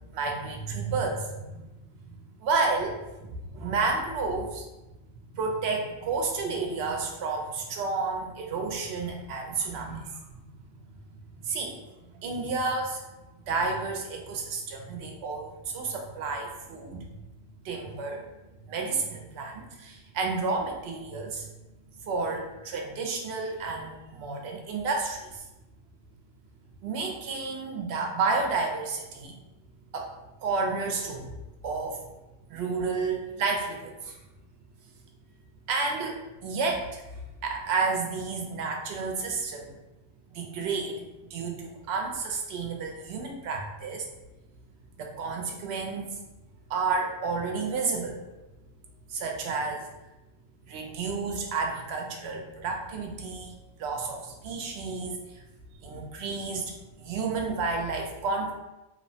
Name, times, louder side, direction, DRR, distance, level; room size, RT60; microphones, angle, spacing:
voice 1, 0.1-1.7 2.0-2.1 2.4-4.7 5.3-10.4 11.4-11.8 12.2-13.0 13.5-17.1 17.6-18.3 18.7-21.5 22.0-25.4 26.8-29.4 29.9-30.1 30.4-31.3 31.6-32.0 32.5-34.2 35.7-37.0 37.4-39.7 40.3-41.0 41.3-44.1 45.0-46.0 46.7-48.2 49.1-49.9 50.7-53.5 53.8-55.4 55.8-56.7 57.0-58.5, right 4 dB, 75° right, 1 dB, 0.8 m, -31 dB
3.0 x 2.0 x 2.7 m, 1.0 s
omnidirectional pair, 1.1 m